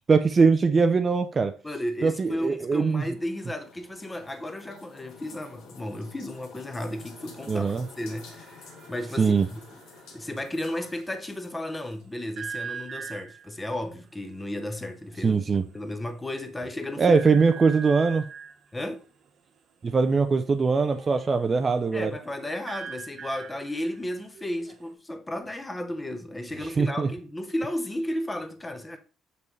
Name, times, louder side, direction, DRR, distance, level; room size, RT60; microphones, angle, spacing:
voice 1, 0.0-1.5 2.0-3.0 7.5-7.9 9.2-9.5 15.2-15.6 17.0-18.2 19.8-22.1 26.6-27.1, right 4 dB, 25° right, 0.4 m, -22 dB
voice 2, 1.6-9.6 10.1-15.4 15.7-17.2 18.7-19.0 21.9-29.0, left 1 dB, 10° left, 0.7 m, -34 dB
sound 1, 2.4-12.0, left 4 dB, 70° left, 1.6 m, -50 dB
sound 2, 6.7-11.1 12.4-13.6 14.8-14.9 15.1-15.4 15.8-15.9 17.0-18.6 20.8-24.9, right 6 dB, 50° right, 1.1 m, -42 dB
6.6 x 5.4 x 3.1 m
cardioid pair, 155°, 0 cm